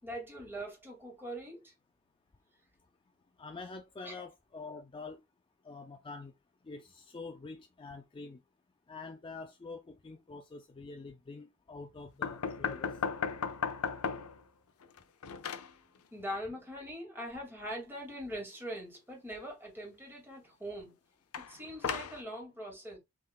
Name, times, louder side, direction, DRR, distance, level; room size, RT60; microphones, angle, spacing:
voice 1, 0.0-1.7 4.0-4.1 16.1-20.9 21.5-23.0, equal, 10° right, 2.2 m, -42 dB
voice 2, 3.4-5.2 5.6-6.3 6.6-8.4 8.9-13.0, left 3 dB, 25° left, 0.4 m, -46 dB
sound 1, 12.2-14.4 14.8-15.7 21.3-22.2, left 6 dB, 80° left, 0.6 m, -35 dB
5.5 x 3.6 x 2.3 m
head